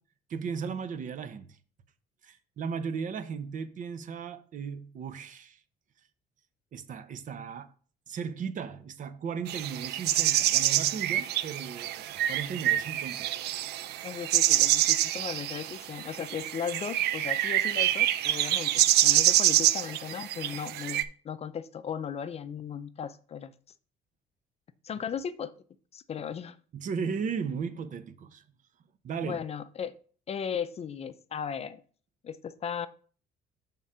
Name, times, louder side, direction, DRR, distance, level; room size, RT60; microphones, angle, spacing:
voice 1, 0.3-1.6 2.2-5.6 6.7-7.7 8.1-13.3 26.7-28.4 29.0-29.4, right 6 dB, 50° right, 0.8 m, -36 dB
sound 1, 9.5-21.0, right 13 dB, 75° right, 0.5 m, -26 dB
voice 2, 14.0-23.5 24.8-25.5 25.9-26.6 29.2-29.9 30.3-31.8 32.2-32.9, left 7 dB, 40° left, 0.5 m, -36 dB
7.2 x 3.7 x 5.5 m
cardioid pair, 110°, 17 cm